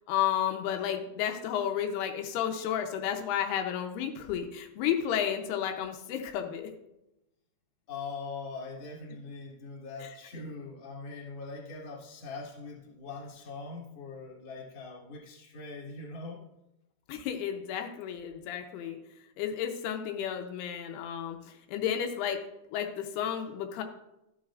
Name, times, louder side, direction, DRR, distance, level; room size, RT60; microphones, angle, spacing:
voice 1, 0.1-6.7 17.1-19.0 19.4-22.4 22.7-23.8, left 9 dB, 85° left, 4 dB, 2.8 m, -32 dB
voice 2, 7.9-16.4, left 4 dB, 40° left, -4 dB, 2.1 m, -42 dB
12.5 x 7.3 x 2.4 m, 0.89 s
omnidirectional pair, 4.6 m